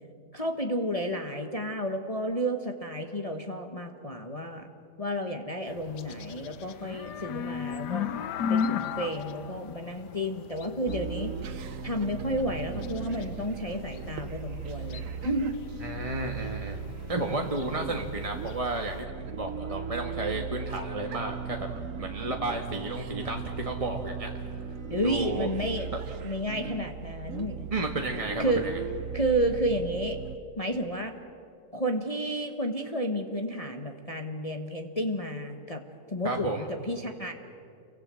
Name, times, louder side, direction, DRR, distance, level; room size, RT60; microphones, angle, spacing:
voice 1, 0.3-4.7 5.0-8.1 8.5-11.3 11.8-15.5 24.9-25.9 26.2-27.6 28.4-28.7 29.1-30.2 30.6-31.1 31.7-35.8 36.1-37.3, equal, 25° left, 4 dB, 1.3 m, -31 dB
sound 1, 5.7-19.1, left 7 dB, 80° left, 1.5 m, -37 dB
sound 2, 10.9-30.4, right 7 dB, 55° right, 1.2 m, -38 dB
voice 2, 15.8-16.8 17.1-21.7 22.0-24.3 25.0-25.5 27.7-28.8 36.2-36.7, right 2 dB, 20° right, 2 dB, 1.5 m, -32 dB
29.5 x 24.0 x 7.7 m, 2.5 s
omnidirectional pair, 1.8 m